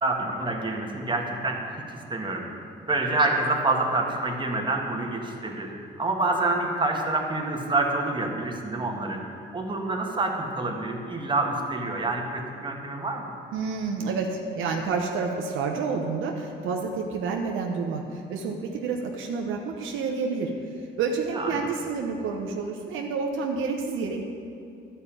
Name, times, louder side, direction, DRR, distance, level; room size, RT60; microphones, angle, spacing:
voice 1, 0.0-2.5 2.9-5.7 6.0-9.2 9.5-13.3 21.3-21.7, right 2 dB, 25° right, 0 dB, 1.7 m, -27 dB
voice 2, 13.5-20.5 20.8-24.2, right 4 dB, 85° right, 2 dB, 1.0 m, -29 dB
12.0 x 5.7 x 8.5 m, 2.5 s
cardioid pair, 90°, 20 cm